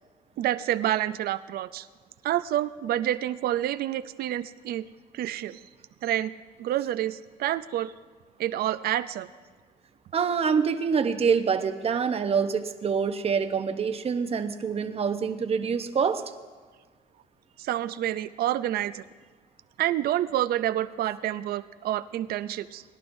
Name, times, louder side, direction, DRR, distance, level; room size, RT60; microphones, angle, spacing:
voice 1, 0.4-1.9 2.2-4.8 5.1-5.6 6.0-6.3 6.6-7.9 8.4-9.3 17.6-19.0 19.8-22.8, right 12 dB, 65° right, 14 dB, 0.5 m, -28 dB
voice 2, 10.1-16.2, right 6 dB, 35° right, 8 dB, 0.8 m, -26 dB
21.0 x 11.5 x 2.7 m, 1.5 s
cardioid pair, 110°, 17 cm